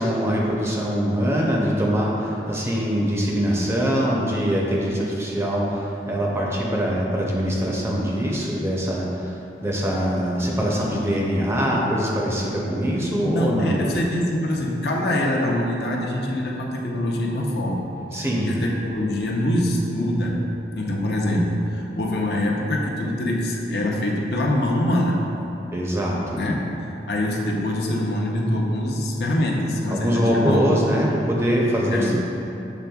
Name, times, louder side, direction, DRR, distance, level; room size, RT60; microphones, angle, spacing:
voice 1, 0.0-9.3 9.6-13.8 18.1-18.5 25.7-26.4 29.9-32.1, equal, 15° right, -3 dB, 0.5 m, -23 dB
voice 2, 13.2-20.5 20.8-25.2 26.4-30.7 31.9-32.1, left 1 dB, 60° left, -1 dB, 0.5 m, -24 dB
6.9 x 3.4 x 2.3 m, 2.9 s
head